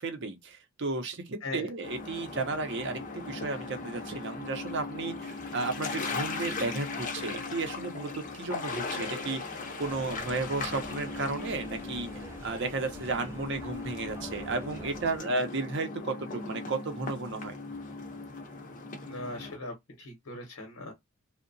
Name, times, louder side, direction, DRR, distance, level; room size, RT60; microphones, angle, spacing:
voice 1, 0.0-12.1 12.4-17.6, right 3 dB, 50° right, 0.6 m, -33 dB
voice 2, 1.4-1.7 14.8-15.3 19.0-20.9, left 2 dB, 75° left, 0.8 m, -40 dB
sound 1, 1.8-19.6, left 3 dB, 35° left, 0.5 m, -38 dB
sound 2, 9.8-15.2, right 1 dB, 10° right, 0.3 m, -46 dB
2.7 x 2.1 x 2.5 m
head